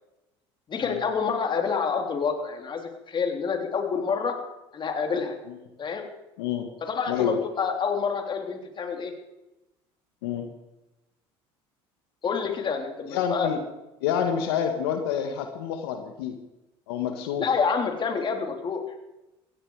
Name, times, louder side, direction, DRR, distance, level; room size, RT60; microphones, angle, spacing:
voice 1, 0.7-4.4 4.7-5.4 5.8-6.0 6.8-9.1 12.2-13.5 17.4-18.8, left 5 dB, 40° left, 4 dB, 3.6 m, -28 dB
voice 2, 6.4-6.7 7.1-7.4 10.2-10.5 13.1-13.6 14.0-16.3 16.9-17.5, left 8 dB, 90° left, 5 dB, 1.8 m, -28 dB
17.0 x 15.5 x 5.0 m, 0.98 s
supercardioid pair, 90°, 13 cm